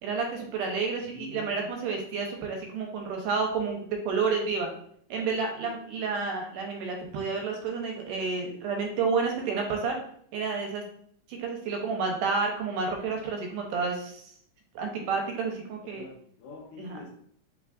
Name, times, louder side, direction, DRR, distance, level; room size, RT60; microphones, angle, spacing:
voice 1, 0.0-3.8 4.1-4.7 5.1-10.0 10.3-10.8 11.3-14.3 14.8-16.0 16.8-17.0, right 4 dB, 80° right, 1 dB, 2.1 m, -30 dB
voice 2, 1.1-1.6 15.9-17.1, left 3 dB, 75° left, 0 dB, 2.0 m, -45 dB
4.7 x 3.5 x 2.4 m, 0.62 s
omnidirectional pair, 3.8 m